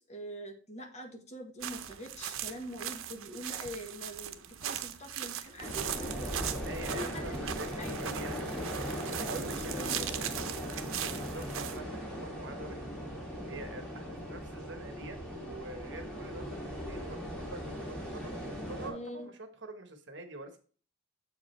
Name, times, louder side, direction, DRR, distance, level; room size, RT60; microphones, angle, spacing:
voice 1, 0.1-6.3 6.9-8.1 9.2-10.4 18.8-19.3, equal, 35° left, 3 dB, 1.4 m, -44 dB
sound 1, 1.6-11.8, right 10 dB, 90° right, 0.7 m, -39 dB
sound 2, 5.6-18.9, equal, 5° left, 2.2 m, -39 dB
voice 2, 6.6-8.5 9.1-10.0 11.0-12.8 13.5-20.6, right 2 dB, 60° right, 6 dB, 1.2 m, -46 dB
7.4 x 4.8 x 4.4 m, 0.40 s
head